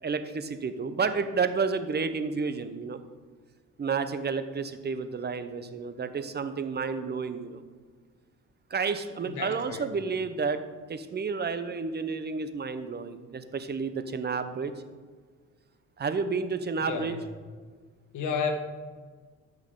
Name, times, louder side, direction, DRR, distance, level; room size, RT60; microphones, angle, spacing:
voice 1, 0.0-3.0 3.8-7.6 8.7-10.6 10.9-14.7 16.0-17.2, right 5 dB, 35° right, 10 dB, 0.8 m, -31 dB
voice 2, 9.3-9.8 16.8-17.2 18.1-18.5, left 6 dB, 80° left, 5 dB, 1.4 m, -31 dB
13.0 x 6.1 x 3.8 m, 1.5 s
cardioid pair, 90°, 30 cm